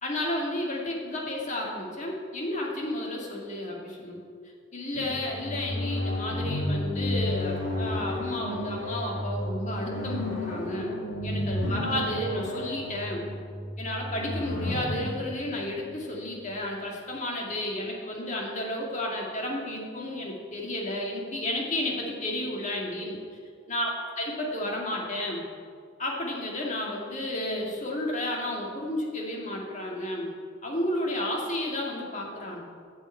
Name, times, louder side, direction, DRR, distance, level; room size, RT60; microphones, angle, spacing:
voice 1, 0.0-4.2 4.7-10.9 11.2-13.2 13.8-23.2 23.7-25.4 26.0-30.3 30.6-32.6, left 1 dB, 35° left, -1 dB, 2.1 m, -32 dB
sound 1, 4.9-16.6, left 1 dB, 90° left, 3.1 m, -32 dB
9.9 x 7.2 x 8.6 m, 2.2 s
head